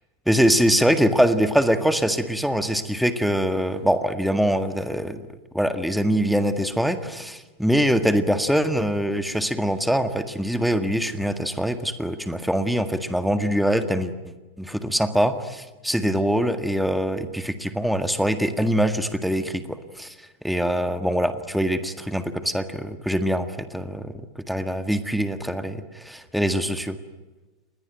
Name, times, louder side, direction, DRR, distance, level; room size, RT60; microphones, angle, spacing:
voice 1, 0.3-5.2 5.5-14.1 14.6-20.1 20.4-24.1 24.5-27.0, equal, ahead, 10 dB, 1.8 m, -23 dB
29.0 x 21.5 x 9.3 m, 1.2 s
figure-of-eight pair, 90°, 0 cm